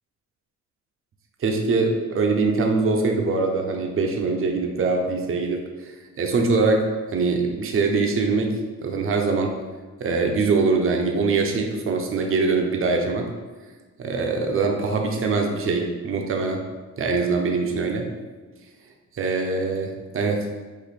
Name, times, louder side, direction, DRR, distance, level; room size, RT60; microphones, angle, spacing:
voice 1, 1.4-5.9 6.2-6.9 7.1-8.5 8.8-9.5 10.0-13.3 14.0-16.6 17.0-18.1 19.1-20.5, right 4 dB, 45° right, 3 dB, 0.7 m, -23 dB
5.0 x 2.5 x 4.1 m, 1.3 s
cardioid pair, 90°, 30 cm